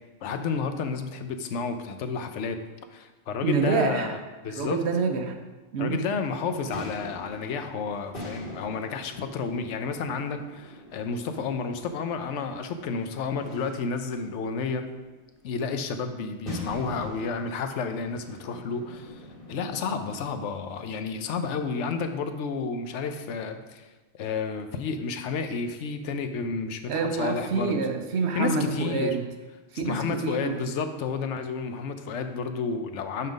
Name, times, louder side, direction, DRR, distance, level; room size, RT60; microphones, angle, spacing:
voice 1, 0.2-2.6 2.9-4.2 4.4-4.8 5.8-14.8 15.4-19.2 19.5-23.9 24.1-27.8 28.3-29.2 29.7-33.3, left 5 dB, 90° left, 8 dB, 1.0 m, -31 dB
voice 2, 3.4-4.1 4.5-5.4 5.7-6.1 26.9-29.3 29.7-30.6, right 4 dB, 70° right, 5 dB, 1.0 m, -27 dB
sound 1, 6.4-21.1, left 1 dB, 50° left, 1.9 m, -43 dB
5.7 x 5.5 x 5.2 m, 1.2 s
omnidirectional pair, 1.2 m